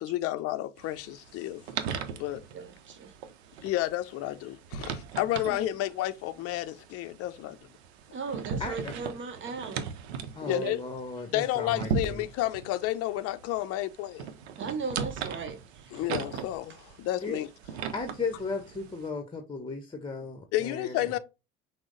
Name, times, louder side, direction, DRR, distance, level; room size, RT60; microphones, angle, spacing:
voice 1, 0.0-1.6 2.2-2.4 3.6-7.6 10.4-10.8 11.3-14.2 15.9-17.5 20.5-21.2, left 15 dB, 50° left, 0.5 m, -31 dB
sound 1, 0.8-19.1, right 6 dB, 75° right, 0.6 m, -39 dB
voice 2, 2.5-3.1 5.3-5.6 8.1-9.9 10.5-10.7 14.6-15.6, right 5 dB, 35° right, 0.8 m, -37 dB
voice 3, 8.6-8.9 10.4-12.3 15.9-16.1 17.2-17.4 17.9-21.1, left 4 dB, 15° left, 0.9 m, -36 dB
6.0 x 2.1 x 3.8 m
hypercardioid pair, 65°, 32 cm